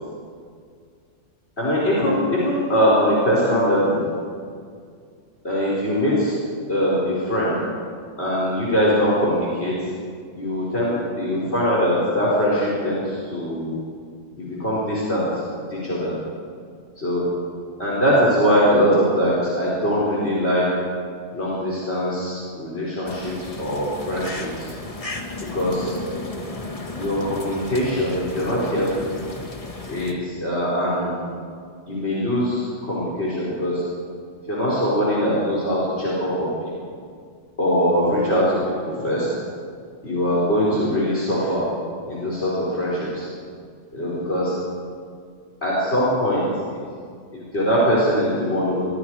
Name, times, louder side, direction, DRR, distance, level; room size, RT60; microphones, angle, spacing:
voice 1, 1.6-4.1 5.4-6.4 6.7-7.6 8.2-9.9 10.3-13.8 14.4-15.4 15.7-16.2 17.0-17.3 17.8-20.7 21.3-24.7 25.5-25.9 26.9-29.2 29.9-31.3 31.9-33.8 34.5-36.5 37.6-39.3 40.0-41.6 42.1-43.3 43.9-44.6 45.6-46.8 47.3-48.9, equal, 60° left, -7 dB, 5.3 m, -22 dB
Crow-in-distance, 23.1-30.1, left 2 dB, 30° left, 1.8 m, -34 dB
25.5 x 24.0 x 5.0 m, 2.2 s
omnidirectional pair, 1.2 m